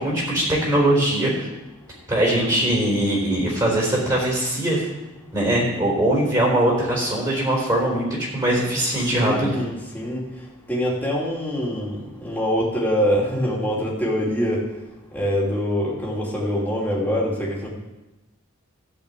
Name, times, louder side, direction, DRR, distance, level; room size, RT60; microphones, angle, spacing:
voice 1, 0.0-1.5 2.1-4.9 5.3-9.5, right 1 dB, 20° right, -4 dB, 3.7 m, -21 dB
voice 2, 9.1-10.2 10.7-14.6 15.1-17.7, equal, 10° left, -4 dB, 2.7 m, -24 dB
13.5 x 5.1 x 8.3 m, 1.0 s
head